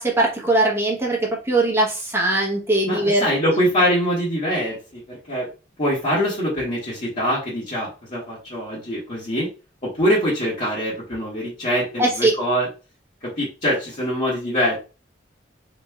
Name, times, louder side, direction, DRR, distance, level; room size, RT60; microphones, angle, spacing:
voice 1, 0.0-3.3 12.0-12.3, right 2 dB, 15° right, -2 dB, 1.0 m, -20 dB
voice 2, 2.9-5.5 5.8-9.5 9.8-12.7 13.4-14.8, equal, 40° left, -8 dB, 1.4 m, -23 dB
3.1 x 2.6 x 3.5 m, 0.31 s
head